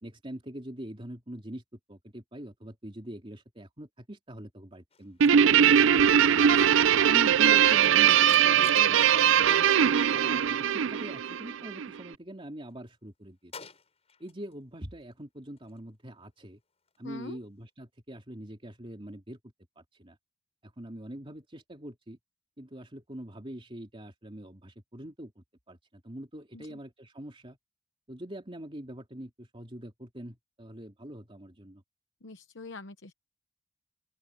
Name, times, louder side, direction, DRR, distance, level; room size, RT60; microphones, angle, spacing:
voice 1, 0.0-5.7 6.5-9.7 10.1-13.5 14.2-16.6 17.0-19.4 19.8-20.2 20.6-22.2 22.6-27.6 28.1-31.8, right 1 dB, 30° right, 3.1 m, -43 dB
sound 1, 4.9-10.2 10.5-12.1 12.5-14.6 14.9-17.7, left 5 dB, 35° left, 7.4 m, -55 dB
Guitar, 5.2-11.9, right 9 dB, 85° right, 0.5 m, -21 dB
voice 2, 6.3-6.9 17.0-17.4 26.5-26.8 32.2-33.1, left 3 dB, 65° left, 1.0 m, -45 dB
open air
head